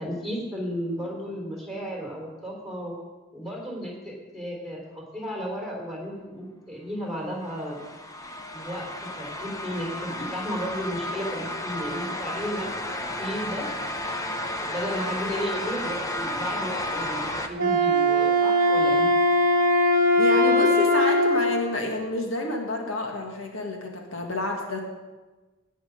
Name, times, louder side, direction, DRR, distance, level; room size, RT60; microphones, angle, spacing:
voice 1, 0.0-3.0 3.3-7.8 8.5-8.9 9.2-12.7 13.0-13.7 14.6-19.1, equal, ahead, -2 dB, 3.9 m, -33 dB
sound 1, 7.4-17.5, left 1 dB, 15° left, 0.7 m, -32 dB
Wind instrument woodwind instrument, 17.5-21.6, equal, 45° right, 1.1 m, -20 dB
voice 2, 20.2-24.8, left 2 dB, 80° left, 2 dB, 1.7 m, -28 dB
18.0 x 6.4 x 5.2 m, 1.2 s
head